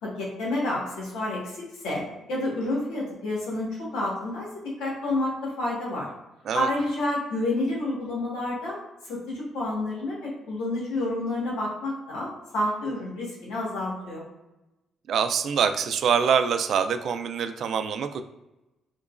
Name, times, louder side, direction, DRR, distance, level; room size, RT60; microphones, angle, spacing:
voice 1, 0.0-2.0 2.3-4.5 4.8-6.1 6.5-8.8 9.0-12.3 12.5-14.2, left 1 dB, 90° left, -5 dB, 1.4 m, -29 dB
voice 2, 15.1-18.2, right 7 dB, 65° right, 9 dB, 0.3 m, -25 dB
3.7 x 3.0 x 2.4 m, 0.99 s
cardioid pair, 90°, 0 cm